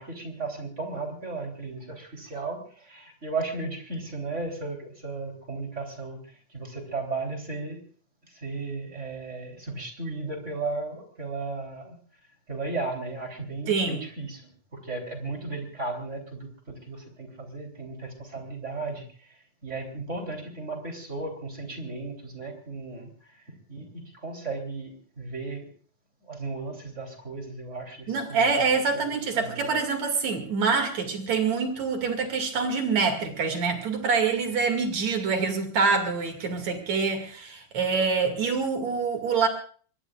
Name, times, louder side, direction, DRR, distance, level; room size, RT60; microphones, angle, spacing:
voice 1, 0.0-7.8 8.3-12.0 12.5-23.4 23.7-25.7 26.2-28.6 29.1-29.7, right 3 dB, 20° right, 3 dB, 3.8 m, -35 dB
voice 2, 13.7-14.0 28.1-39.5, right 5 dB, 65° right, 5 dB, 3.6 m, -25 dB
24.5 x 21.5 x 2.5 m, 0.44 s
omnidirectional pair, 3.5 m